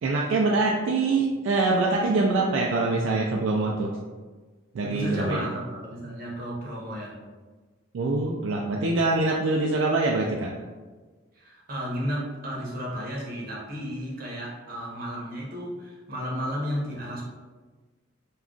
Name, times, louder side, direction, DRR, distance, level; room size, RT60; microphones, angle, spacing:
voice 1, 0.0-3.9 4.7-5.4 7.9-10.5, right 3 dB, 70° right, -1 dB, 0.3 m, -24 dB
voice 2, 4.8-7.2 11.3-17.2, equal, 45° right, -4 dB, 0.8 m, -33 dB
2.4 x 2.3 x 3.6 m, 1.3 s
head